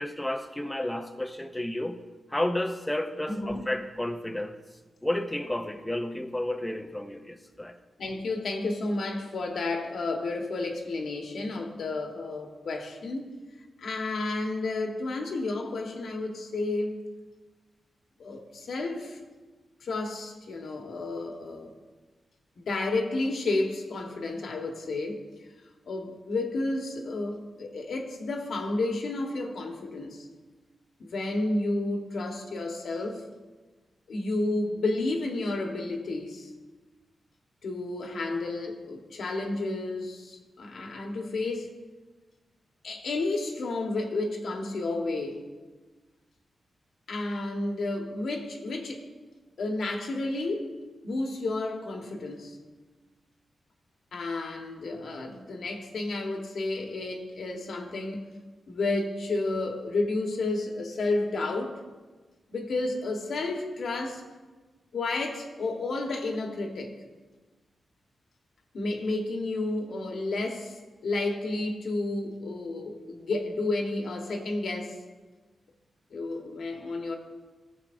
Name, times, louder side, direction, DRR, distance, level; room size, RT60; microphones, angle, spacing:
voice 1, 0.0-2.0 2.3-4.6 5.0-7.7, left 1 dB, 10° left, 6 dB, 0.5 m, -31 dB
voice 2, 3.3-3.6 8.0-13.3 13.8-17.0 18.2-19.2 19.8-21.7 22.6-25.2 25.9-30.3 31.0-33.2 34.1-36.5 37.6-41.7 42.8-45.4 47.1-49.1 49.6-50.7 51.0-52.6 54.1-58.2 58.7-61.8 62.5-64.2 64.9-66.9 68.7-70.8 71.0-75.0 76.1-77.2, left 2 dB, 75° left, 3 dB, 1.2 m, -31 dB
15.0 x 7.3 x 2.6 m, 1.3 s
wide cardioid pair, 100°, 0 cm